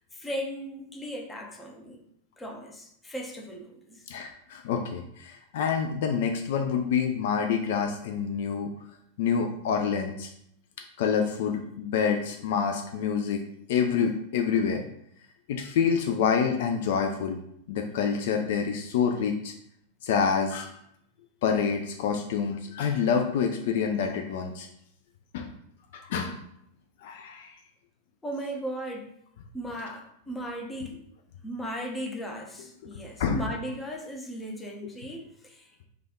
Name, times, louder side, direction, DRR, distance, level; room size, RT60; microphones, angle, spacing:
voice 1, 0.1-2.0 2.4-4.0 28.2-29.1 29.5-31.0 31.4-35.8, equal, 10° left, 1 dB, 0.6 m, -37 dB
voice 2, 4.1-8.7 9.2-10.3 11.0-13.4 13.7-14.8 15.5-17.4 17.7-19.5 20.0-20.8 21.4-24.7 25.3-25.5 25.9-26.4 27.0-27.5 32.8-32.9 33.2-33.5, left 6 dB, 55° left, 4 dB, 0.3 m, -27 dB
3.3 x 2.3 x 3.5 m, 0.73 s
figure-of-eight pair, 90°, 0 cm